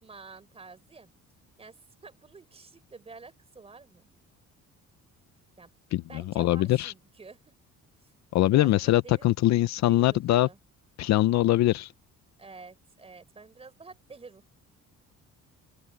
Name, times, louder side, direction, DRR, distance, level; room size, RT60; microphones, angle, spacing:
voice 1, 0.0-1.1 1.6-4.1 5.6-5.7 6.1-7.5 8.0-8.1 8.5-9.3 9.9-10.6 12.4-14.5, right 4 dB, 20° right, 4.8 m, -49 dB
voice 2, 6.4-6.9 8.3-10.5 11.0-11.9, left 15 dB, 60° left, 0.6 m, -22 dB
open air
cardioid pair, 175°, 31 cm